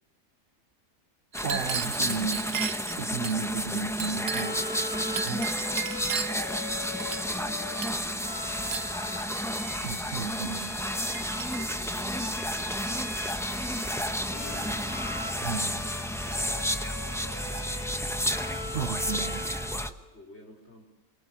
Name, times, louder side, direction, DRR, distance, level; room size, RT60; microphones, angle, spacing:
sound 1, 1.3-19.9, equal, ahead, 0.9 m, -31 dB
Chink clink, 1.3-3.4 4.0-4.7 5.2-6.5 7.0-7.5 7.8-8.1 8.7-9.0 9.7-9.8 10.6-10.7 11.1-11.8 12.6-13.2 13.5-13.8 14.9-15.6 16.3-16.5 16.7-17.6, right 7 dB, 80° right, 1.6 m, -36 dB
voice 1, 1.4-2.5 3.0-4.5 5.2-5.5 9.8-10.8 15.4-15.7 18.6-19.5, right 6 dB, 60° right, 6 dB, 1.5 m, -34 dB
voice 2, 2.6-5.8 6.3-9.0 11.3-12.9 13.3-14.8 15.6-18.0 19.7-20.8, left 1 dB, 45° left, 0 dB, 5.1 m, -52 dB
Bowed string instrument, 4.2-20.0, left 2 dB, 75° left, 3.5 m, -41 dB
24.0 x 23.0 x 7.5 m, 1.0 s
omnidirectional pair, 1.5 m